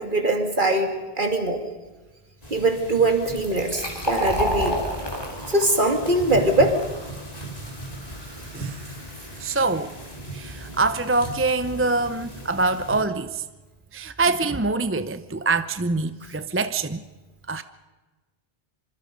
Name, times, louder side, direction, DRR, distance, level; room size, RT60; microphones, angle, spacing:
voice 1, 0.0-1.6 2.5-4.8 5.5-6.8, right 2 dB, 50° right, 2.6 m, -22 dB
sound 1, 2.4-13.0, right 1 dB, 35° left, 3.3 m, -37 dB
Fill (with liquid), 3.2-10.6, equal, 20° left, 3.7 m, -33 dB
voice 2, 9.4-9.9 10.3-13.5 13.9-17.0 17.5-17.6, right 3 dB, 15° right, 0.5 m, -24 dB
25.5 x 25.5 x 5.2 m
omnidirectional pair, 1.1 m